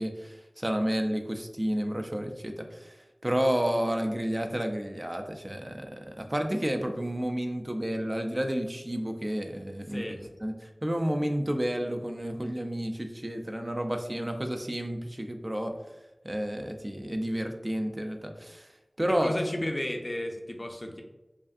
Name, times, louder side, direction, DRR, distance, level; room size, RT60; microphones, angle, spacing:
voice 1, 0.0-2.9 3.2-10.0 10.4-15.7 16.2-18.7 19.0-19.3, equal, 30° right, 5 dB, 0.4 m, -31 dB
voice 2, 9.9-10.2 19.1-21.0, left 1 dB, 40° left, 3 dB, 0.5 m, -33 dB
5.0 x 2.5 x 2.4 m, 1.1 s
wide cardioid pair, 45°, 0 cm